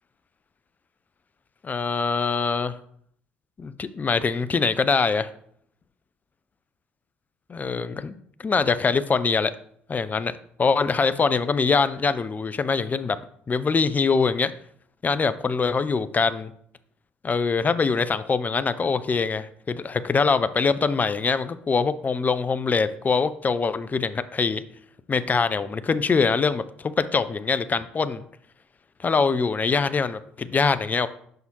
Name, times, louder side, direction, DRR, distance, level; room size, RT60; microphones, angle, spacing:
voice 1, 1.6-2.7 3.6-5.3 7.5-8.2 8.4-9.5 9.9-10.3 10.6-13.2 13.5-14.5 15.0-16.5 17.2-24.6 25.1-28.2 29.0-31.1, left 5 dB, 30° left, 13 dB, 0.4 m, -23 dB
5.7 x 5.6 x 2.9 m, 0.64 s
figure-of-eight pair, 55°, 6 cm